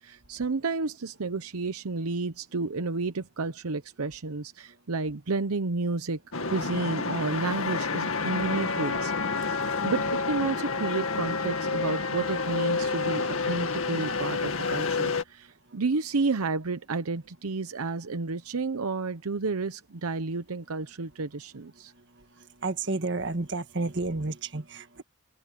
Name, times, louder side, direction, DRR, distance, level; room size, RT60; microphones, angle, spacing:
voice 1, 0.0-6.2 6.5-9.1 9.8-21.9, right 3 dB, 85° right, 0.8 m, -31 dB
sound 1, 6.3-15.2, left 4 dB, 70° left, 2.1 m, -29 dB
voice 2, 22.6-25.0, right 3 dB, 55° right, 1.7 m, -31 dB
open air
head